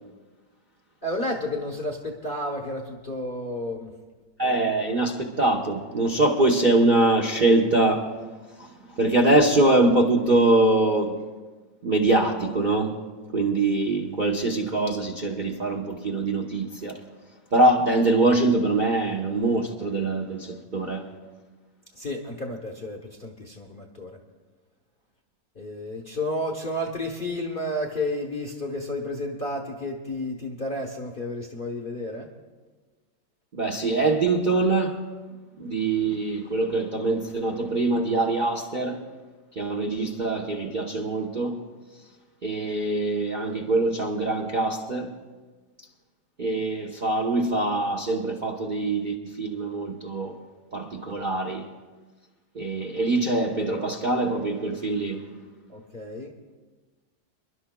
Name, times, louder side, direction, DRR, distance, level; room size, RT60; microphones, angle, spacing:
voice 1, 1.0-3.9 21.9-24.2 25.5-32.3 55.7-56.3, left 1 dB, 35° left, 0.9 m, -31 dB
voice 2, 4.4-8.0 8.6-11.3 11.8-13.0 13.3-17.0 17.5-21.1 33.5-35.0 35.6-39.0 39.6-41.6 42.4-45.1 46.4-50.4 50.7-51.7 52.5-55.3, right 2 dB, 40° right, 0.7 m, -23 dB
28.5 x 11.5 x 2.2 m
omnidirectional pair, 2.1 m